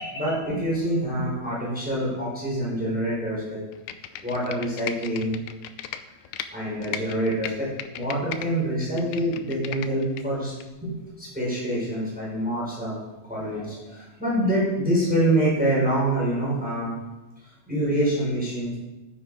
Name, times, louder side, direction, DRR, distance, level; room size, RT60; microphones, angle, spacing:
voice 1, 0.0-3.6 4.2-5.4 6.5-7.7 7.9-10.5 10.8-12.9 13.3-16.9 17.7-18.8, right 1 dB, 5° right, -6 dB, 4.5 m, -26 dB
Computer keyboard, 3.7-6.5 6.8-8.5 8.8-10.2 10.6-10.7, left 11 dB, 85° left, 2.0 m, -36 dB
14.0 x 8.2 x 4.8 m, 1.1 s
omnidirectional pair, 3.3 m